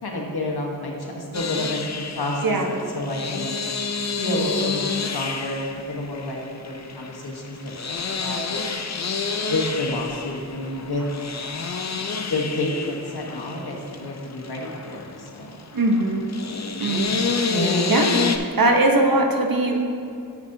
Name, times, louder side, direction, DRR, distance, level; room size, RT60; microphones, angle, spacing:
voice 1, 0.0-3.5 4.2-8.6 9.5-11.0 12.3-15.6 17.4-17.9, left 1 dB, 85° left, -1 dB, 1.2 m, -29 dB
sound 1, 1.3-18.4, left 5 dB, 45° left, 0.5 m, -29 dB
voice 2, 15.7-16.2 16.8-17.2 17.9-18.1 18.6-19.8, right 2 dB, 65° right, 1 dB, 0.9 m, -20 dB
9.5 x 7.2 x 2.7 m, 2.5 s
wide cardioid pair, 60°, 37 cm